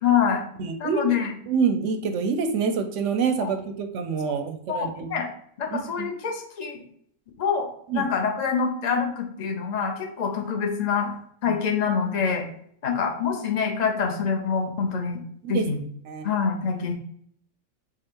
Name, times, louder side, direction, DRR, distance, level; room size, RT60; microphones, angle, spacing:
voice 1, 0.0-0.4 0.8-1.3 3.4-3.5 4.7-5.3 5.6-6.8 7.4-7.7 7.9-11.1 11.4-12.4 12.8-15.2 15.5-15.8 16.2-16.9, left 6 dB, 45° left, 3 dB, 0.5 m, -25 dB
voice 2, 0.6-1.2 1.5-5.1 5.7-6.1 7.9-8.0 11.5-11.6 15.4-15.7 16.1-16.3, right 5 dB, 65° right, 8 dB, 0.8 m, -26 dB
4.9 x 2.4 x 4.4 m, 0.65 s
omnidirectional pair, 1.6 m